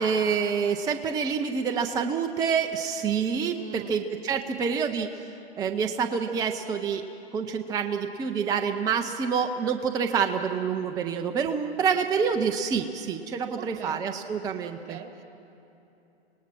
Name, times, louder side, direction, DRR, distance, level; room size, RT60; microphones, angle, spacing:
voice 1, 0.0-5.1 5.6-7.0 7.3-15.0, right 6 dB, 10° right, 5 dB, 0.5 m, -27 dB
voice 2, 3.5-4.0 13.6-14.0 14.6-15.2, right 10 dB, 60° right, 7 dB, 2.0 m, -42 dB
26.0 x 19.0 x 6.0 m, 2.9 s
hypercardioid pair, 130°, 33 cm